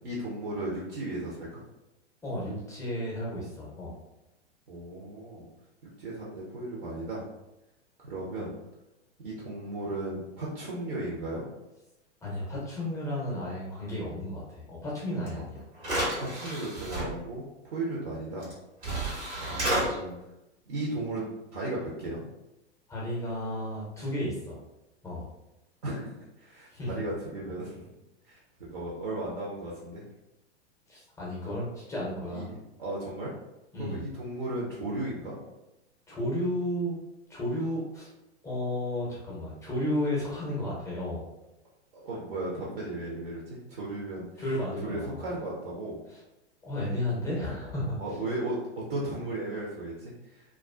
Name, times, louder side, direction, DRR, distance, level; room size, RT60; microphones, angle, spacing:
voice 1, 0.0-1.6 4.7-5.5 6.0-7.2 8.0-8.5 9.2-11.4 15.3-15.4 16.2-18.5 19.4-20.2 20.7-22.2 25.8-27.9 28.3-30.0 31.5-31.6 32.3-33.3 33.8-35.4 41.9-44.4 44.8-46.0 48.0-50.4, right 2 dB, 55° right, -5 dB, 0.7 m, -35 dB
voice 2, 2.2-3.9 12.2-15.6 19.6-20.0 22.9-24.6 25.0-25.3 26.7-26.9 30.9-32.5 33.7-34.0 36.1-36.9 37.3-38.1 38.4-41.2 44.4-45.3 46.1-46.2 46.6-48.0, left 1 dB, 10° left, -5 dB, 0.6 m, -33 dB
sound 1, 15.3-15.4 15.8-17.0 18.4-18.5 18.8-19.8, right 1 dB, 80° right, 1.3 m, -30 dB
2.4 x 2.3 x 2.2 m, 0.94 s
figure-of-eight pair, 95°, 34 cm